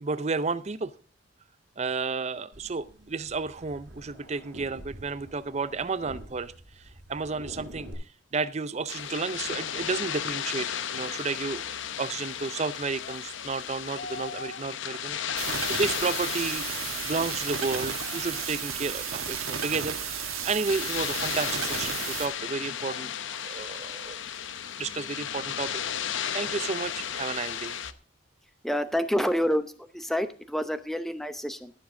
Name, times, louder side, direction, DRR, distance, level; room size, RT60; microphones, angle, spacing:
voice 1, 0.0-0.9 1.8-8.0 8.3-16.7 17.0-23.1 23.4-24.2 24.8-25.7 26.3-27.8, right 4 dB, 30° right, 16 dB, 0.5 m, -32 dB
sound 1, 2.5-7.9, right 1 dB, 55° right, 7.0 m, -47 dB
sound 2, 8.9-27.9, left 8 dB, 60° left, 0.7 m, -35 dB
sound 3, 15.4-22.3, right 8 dB, 85° right, 1.3 m, -33 dB
voice 2, 28.6-31.7, equal, ahead, 11 dB, 0.7 m, -28 dB
17.5 x 7.3 x 3.7 m, 0.39 s
head